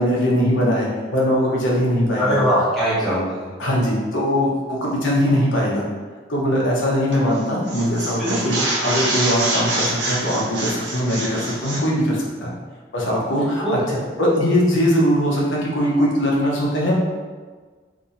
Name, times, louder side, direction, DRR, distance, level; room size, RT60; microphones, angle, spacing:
voice 1, 0.0-2.4 3.6-5.9 6.3-8.6 8.8-12.5 12.9-13.8 14.2-16.9, equal, 85° left, -4 dB, 0.8 m, -20 dB
voice 2, 2.1-3.5 8.2-8.7 13.6-13.7, equal, ahead, -11 dB, 1.0 m, -21 dB
sound 1, 7.1-7.4 7.7-11.9, right 2 dB, 70° right, 0.7 m, -25 dB
2.6 x 2.5 x 4.1 m, 1.5 s
head